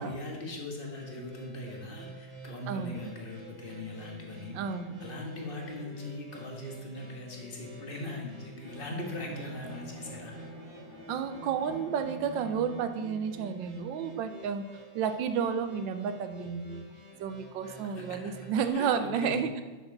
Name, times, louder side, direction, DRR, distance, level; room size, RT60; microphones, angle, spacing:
voice 1, 0.0-4.6 5.0-10.3 17.6-18.3 18.6-19.4, left 2 dB, 30° left, 0 dB, 1.5 m, -40 dB
sound 1, 0.9-18.7, equal, 35° right, 2.2 m, -48 dB
voice 2, 2.7-3.1 4.5-5.0 11.1-14.6 14.9-16.8 17.2-19.6, right 7 dB, 90° right, 9 dB, 1.4 m, -31 dB
Bowed string instrument, 8.6-13.0, equal, 55° left, 3.4 m, -47 dB
9.8 x 6.6 x 4.0 m, 1.2 s
omnidirectional pair, 2.0 m